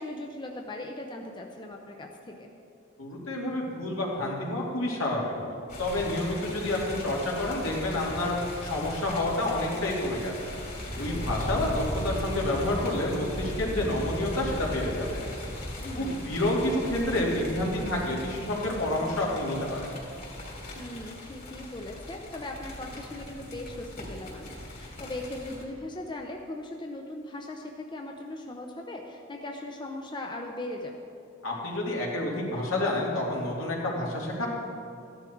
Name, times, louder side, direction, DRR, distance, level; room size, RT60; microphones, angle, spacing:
voice 1, 0.0-2.5 11.0-11.2 15.8-16.3 20.7-31.1, left 1 dB, 20° left, 2 dB, 0.7 m, -39 dB
voice 2, 3.0-5.4 5.8-8.3 8.6-10.5 11.0-15.2 15.9-19.9 31.4-34.5, left 1 dB, 75° left, -3 dB, 2.8 m, -29 dB
sound 1, 5.7-25.6, left 1 dB, 50° left, 3.2 m, -38 dB
14.5 x 11.0 x 4.6 m, 2.5 s
head